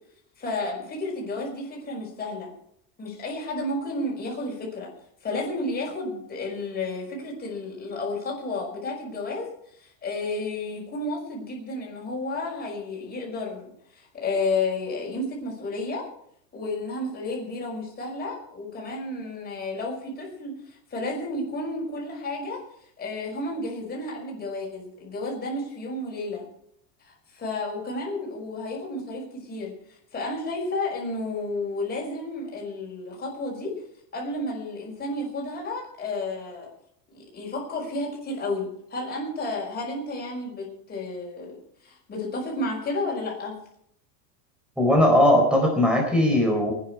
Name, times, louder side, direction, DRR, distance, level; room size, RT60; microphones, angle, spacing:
voice 1, 0.4-2.5 3.0-4.9 5.2-16.1 16.5-22.6 23.0-26.5 27.0-33.7 34.1-36.7 37.1-43.6, left 2 dB, 20° left, -1 dB, 5.5 m, -32 dB
voice 2, 44.8-46.7, left 1 dB, ahead, 0 dB, 4.1 m, -19 dB
24.0 x 10.0 x 4.8 m, 0.69 s
supercardioid pair, 145°, 49 cm